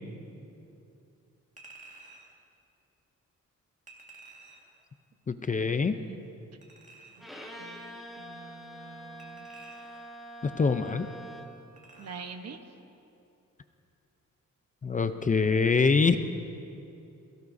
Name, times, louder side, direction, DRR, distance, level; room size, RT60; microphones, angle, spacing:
Chink clink, 1.6-2.3 3.9-4.8 6.6-7.4 9.2-10.2 11.8-12.4 12.8-12.9, right 3 dB, 25° right, 1.8 m, -52 dB
voice 1, 5.3-6.0 10.4-11.1 14.8-16.2, left 4 dB, 25° left, 9 dB, 0.5 m, -24 dB
voice 2, 5.8-6.2 7.2-9.5 12.0-12.6, right 5 dB, 60° right, 7 dB, 1.0 m, -46 dB
Bowed string instrument, 7.2-11.7, right 1 dB, ahead, 1.6 m, -45 dB
22.0 x 16.5 x 2.7 m, 2.7 s
cardioid pair, 115°, 30 cm